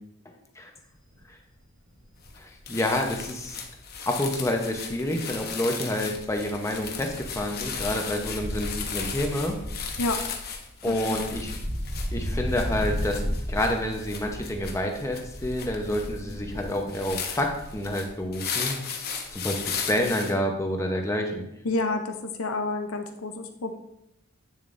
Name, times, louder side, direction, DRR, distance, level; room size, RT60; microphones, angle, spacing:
Wind, 0.9-1.2 1.6-1.7 2.0-5.5 5.8-18.0 18.2-18.3, equal, 80° right, 2.2 m, -35 dB
sound 1, 2.2-2.4 2.7-20.3, left 6 dB, 45° left, 0.9 m, -36 dB
voice 1, 2.4-3.6 4.1-9.6 10.8-11.5 12.1-18.8 19.3-21.4, left 1 dB, 15° left, 2 dB, 0.8 m, -28 dB
voice 2, 10.9-11.3 21.6-23.8, left 2 dB, 80° left, 6 dB, 0.6 m, -29 dB
8.7 x 7.0 x 2.6 m, 0.84 s
head